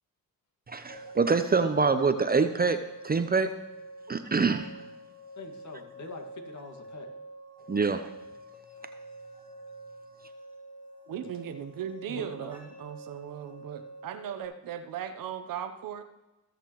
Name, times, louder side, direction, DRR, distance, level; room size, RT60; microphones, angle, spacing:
voice 1, 0.7-2.8 3.0-3.5 4.1-4.7 7.7-8.1, right 4 dB, 25° right, 9 dB, 0.7 m, -25 dB
sound 1, 0.9-14.5, right 1 dB, 25° left, 3.5 m, -47 dB
voice 2, 5.4-7.1 12.1-12.5, left 3 dB, 50° left, 3 dB, 2.1 m, -44 dB
voice 3, 11.1-16.0, right 9 dB, 65° right, 9 dB, 1.0 m, -38 dB
20.0 x 6.7 x 3.1 m, 1.0 s
supercardioid pair, 60°, 36 cm